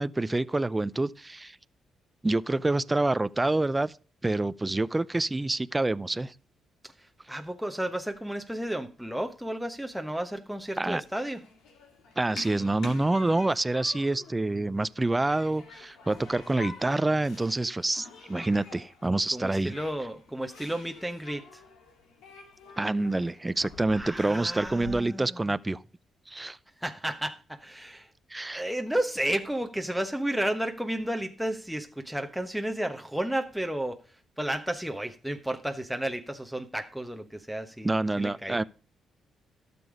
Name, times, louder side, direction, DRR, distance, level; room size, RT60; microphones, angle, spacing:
voice 1, 0.0-1.6 2.2-3.9 4.2-6.3 10.8-11.0 12.2-19.7 22.8-25.8 26.3-26.6 28.3-28.6 37.8-38.6, right 2 dB, 20° right, 0.5 m, -27 dB
voice 2, 7.3-11.4 19.3-21.4 23.9-25.5 26.8-28.1 28.5-34.0 34.4-38.6, right 1 dB, ahead, 1.1 m, -32 dB
Human group actions, 10.6-24.9, left 4 dB, 85° left, 2.4 m, -48 dB
12.5 x 6.9 x 4.9 m
supercardioid pair, 70°, 0 cm